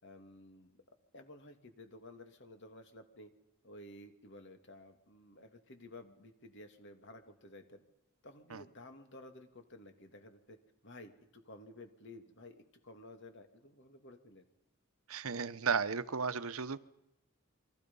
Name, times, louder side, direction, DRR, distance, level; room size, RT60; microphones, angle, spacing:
voice 1, 0.0-3.3 3.6-7.8 8.2-10.6 10.8-14.5, left 1 dB, 60° left, 6 dB, 2.7 m, -54 dB
voice 2, 15.1-16.8, right 5 dB, 85° right, 15 dB, 0.9 m, -34 dB
29.0 x 24.0 x 5.6 m, 0.92 s
head